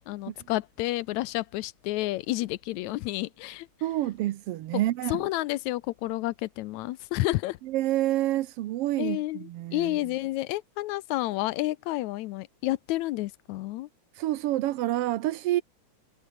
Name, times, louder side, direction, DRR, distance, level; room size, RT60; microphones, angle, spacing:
voice 1, 0.0-3.7 4.7-4.8 5.1-7.6 9.0-13.9, left 17 dB, 85° left, 2.0 m, -30 dB
voice 2, 3.8-5.2 7.7-10.0 14.1-15.6, right 15 dB, 70° right, 1.5 m, -28 dB
omnidirectional pair, 3.4 m